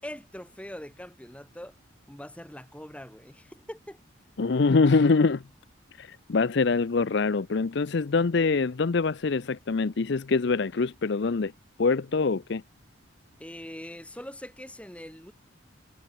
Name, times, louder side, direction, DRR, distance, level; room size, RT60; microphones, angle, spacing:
voice 1, 0.0-1.8 2.1-4.0 13.4-15.3, equal, 5° left, 4.7 m, -42 dB
voice 2, 4.4-5.4 6.0-11.5 11.8-12.6, left 4 dB, 55° left, 0.5 m, -24 dB
head